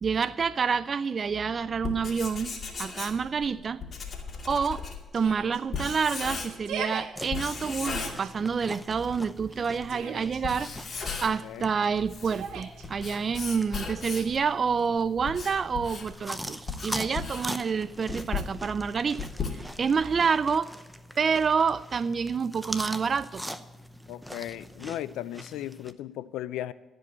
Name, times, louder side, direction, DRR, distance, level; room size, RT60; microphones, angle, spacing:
voice 1, 0.0-2.5 2.8-3.8 4.5-4.8 5.1-19.3 19.5-20.7 21.2-23.4, right 6 dB, 45° right, 0.4 m, -28 dB
Writing, 1.7-6.8 7.3-8.8 9.1-9.2 9.8-9.9 10.3-11.5 11.9-14.4 15.0-20.0, left 5 dB, 45° left, 2.4 m, -36 dB
Yell, 5.1-5.6 6.5-7.1 7.8-8.3 9.5-10.4 12.2-12.8, right 6 dB, 85° right, 1.7 m, -37 dB
sound 1, 7.2-25.9, equal, 5° right, 0.8 m, -42 dB
voice 2, 24.1-26.7, left 13 dB, 90° left, 0.5 m, -36 dB
15.0 x 5.2 x 8.8 m
cardioid pair, 90°, 0 cm